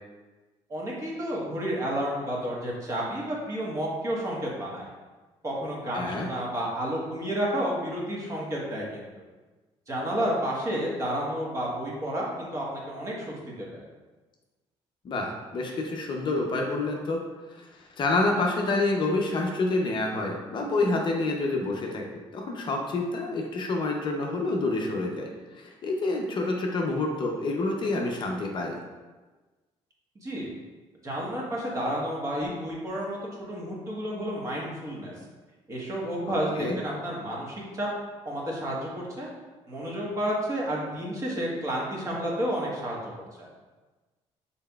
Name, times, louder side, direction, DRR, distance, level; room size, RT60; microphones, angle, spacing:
voice 1, 0.7-4.9 5.4-9.1 9.9-13.8 30.1-30.5 31.0-33.2 33.5-35.1 35.7-37.9 38.2-39.3 39.7-43.1 43.4-43.5, equal, 25° right, -4 dB, 1.2 m, -31 dB
voice 2, 5.9-6.3 15.0-17.2 17.5-28.7 36.3-36.8, left 2 dB, 45° left, 1 dB, 0.6 m, -28 dB
5.5 x 4.1 x 2.3 m, 1.3 s
cardioid pair, 125°, 12 cm